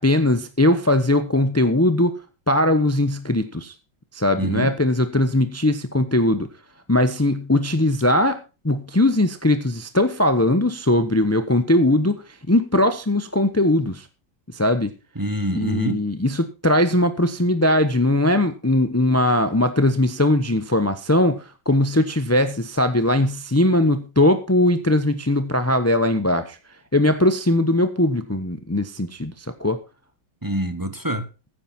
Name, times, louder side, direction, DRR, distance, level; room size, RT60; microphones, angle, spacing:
voice 1, 0.0-2.2 2.5-3.7 4.1-6.5 6.9-14.1 14.5-14.9 15.5-26.6 26.9-29.8, left 1 dB, 20° left, 0.4 m, -20 dB
voice 2, 4.4-4.7 15.2-16.0 30.4-31.3, right 1 dB, 15° right, 0.9 m, -25 dB
15.5 x 9.3 x 4.3 m
omnidirectional pair, 2.1 m